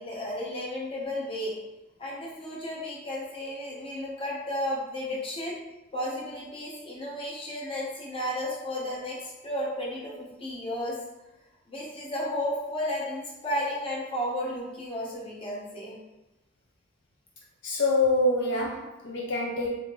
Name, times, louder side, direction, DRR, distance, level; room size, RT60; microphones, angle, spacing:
voice 1, 0.0-1.6 2.0-5.6 5.9-11.0 11.7-16.0, left 1 dB, 30° left, -4 dB, 0.8 m, -33 dB
voice 2, 17.6-19.7, left 2 dB, 60° left, -2 dB, 0.4 m, -25 dB
3.5 x 2.5 x 3.0 m, 0.99 s
head